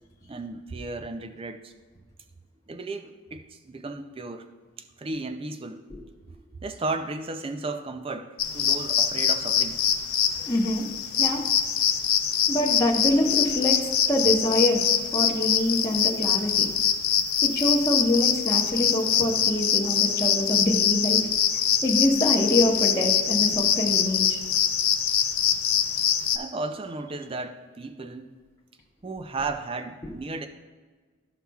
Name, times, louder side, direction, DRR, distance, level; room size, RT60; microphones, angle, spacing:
voice 1, 0.3-1.7 2.7-4.5 5.0-5.9 6.6-9.8 26.3-28.4 29.0-30.5, right 3 dB, 25° right, 8 dB, 0.4 m, -34 dB
sound 1, 8.4-26.4, left 9 dB, 85° left, 0.6 m, -24 dB
voice 2, 10.4-10.8 11.2-11.4 12.5-14.8 15.1-16.7 17.4-21.3 21.8-24.4, left 1 dB, 15° left, -4 dB, 1.0 m, -25 dB
12.5 x 5.7 x 2.3 m, 1.4 s
head